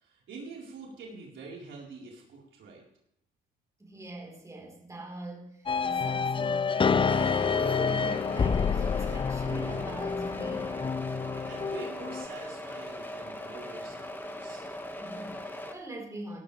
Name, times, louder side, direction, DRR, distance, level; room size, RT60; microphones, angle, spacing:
voice 1, 0.0-2.8 11.3-14.6, right 3 dB, 75° right, -3 dB, 4.3 m, -45 dB
voice 2, 3.8-10.8 15.0-16.4, right 1 dB, 15° right, -1 dB, 4.2 m, -42 dB
sound 1, 5.7-12.3, left 5 dB, 25° left, 0.5 m, -28 dB
sound 2, 7.1-15.7, left 1 dB, 10° left, 1.8 m, -40 dB
17.5 x 12.5 x 3.4 m, 0.77 s
cardioid pair, 90°, 20 cm